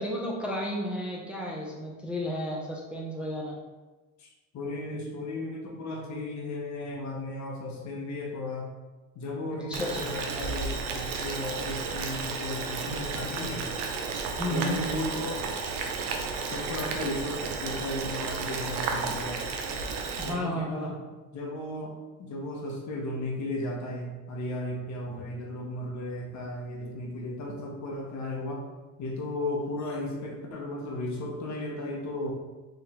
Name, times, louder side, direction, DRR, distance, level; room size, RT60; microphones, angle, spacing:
voice 1, 0.0-3.6 9.5-10.0 14.4-14.8 20.2-20.9, equal, 5° right, -3 dB, 0.5 m, -32 dB
voice 2, 4.2-8.7 9.1-13.7 14.5-15.5 16.5-19.5 20.2-21.0 21.3-28.6 29.0-32.3, left 1 dB, 45° left, 0 dB, 0.8 m, -35 dB
Boiling, 9.7-20.3, right 4 dB, 70° right, 0.6 m, -33 dB
2.8 x 2.4 x 3.2 m, 1.2 s
hypercardioid pair, 60°, 38 cm